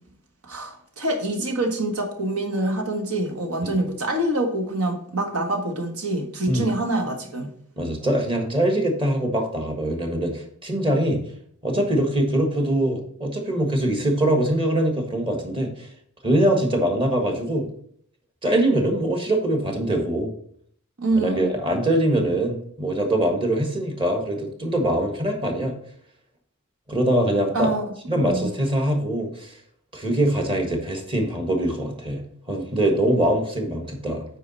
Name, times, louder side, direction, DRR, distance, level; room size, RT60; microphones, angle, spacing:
voice 1, 0.4-7.5 21.0-21.5 27.5-27.9 28.2-28.5, right 1 dB, 80° right, 3 dB, 1.6 m, -25 dB
voice 2, 7.8-11.2 11.6-15.9 16.2-17.7 18.4-20.3 21.2-25.8 26.9-27.7 28.1-29.6 29.9-34.2, right 1 dB, 25° right, 3 dB, 1.5 m, -23 dB
8.7 x 4.8 x 4.1 m, 0.62 s
head